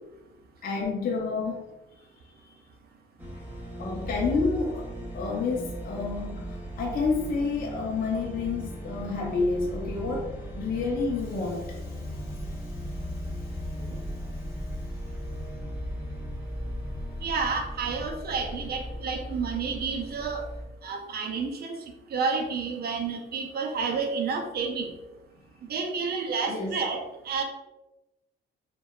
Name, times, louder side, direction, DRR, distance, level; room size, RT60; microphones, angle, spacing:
voice 1, 0.6-1.6 2.4-2.5 3.8-4.9 5.1-12.7 26.5-26.8, left 4 dB, 45° left, -1 dB, 0.5 m, -30 dB
sound 1, 3.2-20.6, equal, 10° right, 0.8 m, -37 dB
voice 2, 17.2-20.5 20.8-21.8 22.1-24.9 25.6-27.4, right 5 dB, 50° right, 4 dB, 0.4 m, -30 dB
2.7 x 2.2 x 2.3 m, 1.0 s
cardioid pair, 90°, 20 cm